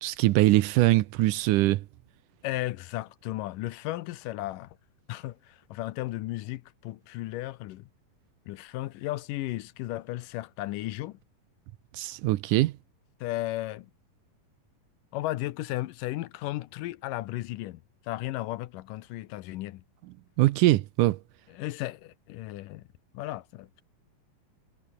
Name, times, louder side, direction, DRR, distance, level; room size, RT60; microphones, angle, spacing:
voice 1, 0.0-1.9 11.9-12.7 20.4-21.2, right 17 dB, 75° right, 2.1 m, -22 dB
voice 2, 2.4-4.8 5.1-7.9 8.5-11.2 13.2-13.9 15.1-19.8 21.5-22.9 23.1-23.8, left 16 dB, 75° left, 2.3 m, -35 dB
omnidirectional pair, 4.0 m